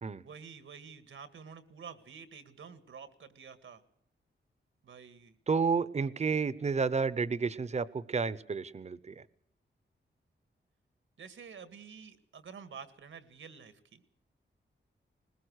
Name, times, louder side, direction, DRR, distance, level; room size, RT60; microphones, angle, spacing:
voice 1, 0.2-3.8 4.8-5.4 5.9-6.1 11.2-14.0, right 6 dB, 85° right, 11 dB, 2.0 m, -49 dB
voice 2, 5.5-9.2, right 5 dB, 35° right, 17 dB, 0.8 m, -31 dB
21.0 x 20.5 x 6.5 m, 0.72 s
wide cardioid pair, 170°, 20 cm